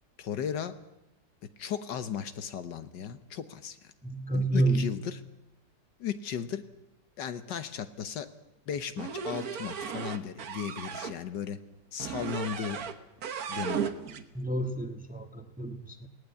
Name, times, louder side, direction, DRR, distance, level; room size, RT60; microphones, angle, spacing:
voice 1, 0.2-0.8 1.6-3.8 4.3-5.2 6.0-6.6 7.2-8.3 8.7-11.6 11.9-12.8 13.5-13.9, left 8 dB, 75° left, 11 dB, 1.7 m, -36 dB
voice 2, 4.0-4.9 14.3-16.1, right 2 dB, 5° right, 7 dB, 1.1 m, -29 dB
sound 1, 9.0-11.2 12.0-13.0 13.2-14.2, right 7 dB, 55° right, 1.5 m, -35 dB
19.0 x 17.5 x 8.3 m, 0.92 s
omnidirectional pair, 2.0 m